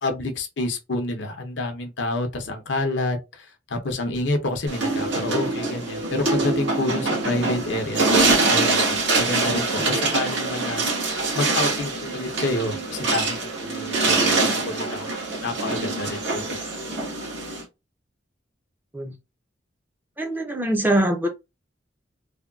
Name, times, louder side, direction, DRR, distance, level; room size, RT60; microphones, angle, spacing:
voice 1, 0.0-15.1 15.4-16.6, left 2 dB, 75° left, 0.7 m, -28 dB
sound 1, 4.7-17.6, right 3 dB, 80° right, 1.4 m, -24 dB
voice 2, 20.2-21.3, right 1 dB, 10° right, 0.5 m, -23 dB
3.4 x 2.2 x 2.3 m
head